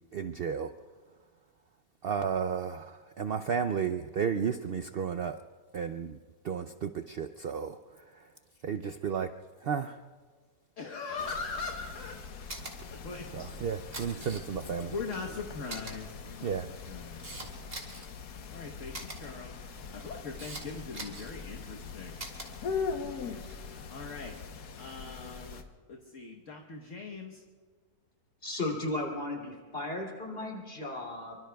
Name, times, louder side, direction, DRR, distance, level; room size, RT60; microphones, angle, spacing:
voice 1, 0.1-0.7 2.0-5.4 5.7-6.2 6.4-8.3 8.6-9.3 9.6-10.0 13.3-14.9 16.4-16.7, right 7 dB, 80° right, 9 dB, 0.5 m, -33 dB
voice 2, 10.8-12.2 12.9-13.2 14.0-14.3 14.9-16.6 16.9-17.4 18.5-22.2 23.0-24.4 24.8-25.6 25.9-27.4, left 4 dB, 55° left, 1 dB, 1.5 m, -41 dB
sound 1, 11.2-25.6, left 5 dB, 90° left, 1.5 m, -42 dB
Camera, 12.5-12.7 13.7-14.7 15.1-15.2 15.7-15.9 16.6-18.1 18.9-19.2 19.9-20.6 20.9-21.3 22.2-22.5 23.3-23.6, right 2 dB, 40° right, 2.6 m, -42 dB
voice 3, 28.4-31.4, left 2 dB, 40° left, -1 dB, 3.0 m, -35 dB
25.5 x 24.0 x 2.3 m, 1.5 s
omnidirectional pair, 1.6 m